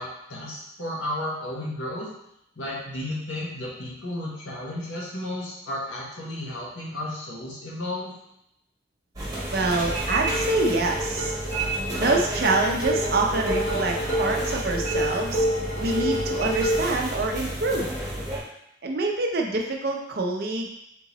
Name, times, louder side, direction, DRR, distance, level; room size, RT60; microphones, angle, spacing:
voice 1, 0.0-2.1 2.6-8.2, left 1 dB, 75° left, -4 dB, 1.2 m, -33 dB
sound 1, 9.2-18.4, right 2 dB, 15° right, 1.1 m, -31 dB
voice 2, 9.5-11.3 12.0-15.5 15.8-17.9 18.8-20.7, right 2 dB, 50° right, 2 dB, 0.5 m, -26 dB
sound 2, 10.0-16.9, equal, 40° left, 1.1 m, -29 dB
3.7 x 3.6 x 3.0 m, 0.79 s
head